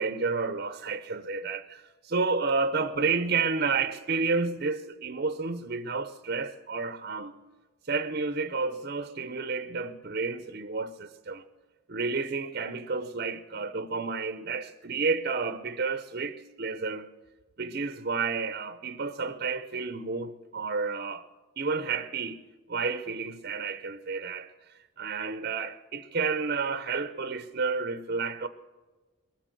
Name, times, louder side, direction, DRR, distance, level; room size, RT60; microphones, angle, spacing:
voice 1, 0.0-7.4 7.9-11.4 11.9-17.1 17.6-21.3 21.6-22.4 22.7-28.5, right 4 dB, 45° right, 0.6 m, -31 dB
21.5 x 8.3 x 7.7 m
head